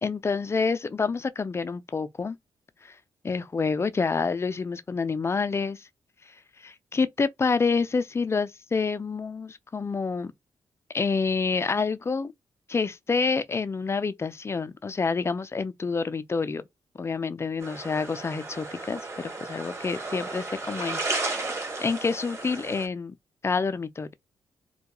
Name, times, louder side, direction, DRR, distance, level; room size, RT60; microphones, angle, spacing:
voice 1, 0.0-2.4 2.8-2.9 3.2-5.9 6.6-10.3 10.9-12.3 12.7-16.6 17.0-21.3 21.8-23.1 23.4-24.1, left 4 dB, 30° left, 0.4 m, -28 dB
sound 1, 17.6-22.9, right 2 dB, 30° right, 1.3 m, -34 dB
2.2 x 2.2 x 2.9 m
supercardioid pair, 50°, 9 cm